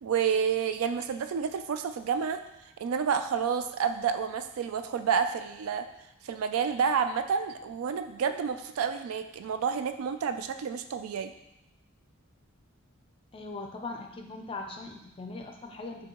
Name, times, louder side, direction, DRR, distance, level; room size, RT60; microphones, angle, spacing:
voice 1, 0.0-2.4 2.8-5.9 6.2-11.3, right 6 dB, 80° right, 9 dB, 0.3 m, -29 dB
voice 2, 13.3-16.1, left 3 dB, 25° left, 3 dB, 0.4 m, -40 dB
6.1 x 2.8 x 2.9 m, 0.86 s
head